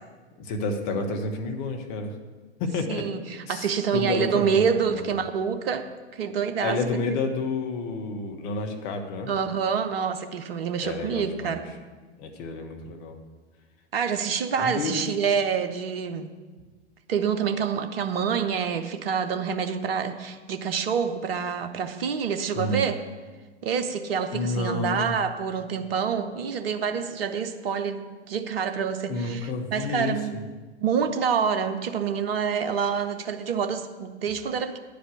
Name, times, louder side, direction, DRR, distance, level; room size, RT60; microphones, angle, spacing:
voice 1, 0.4-2.1 2.6-3.1 3.5-4.7 4.9-5.0 6.6-9.3 10.8-11.6 12.2-13.2 14.6-15.1 22.5-22.8 24.3-25.2 29.1-30.4, left 3 dB, 45° left, 4 dB, 1.4 m, -30 dB
voice 2, 2.9-5.9 6.1-6.8 7.1-7.2 9.3-11.7 13.9-16.3 17.1-23.0 23.6-30.3 30.8-34.8, right 7 dB, 55° right, 8 dB, 0.8 m, -27 dB
9.8 x 5.2 x 8.0 m, 1.3 s
figure-of-eight pair, 100°, 35 cm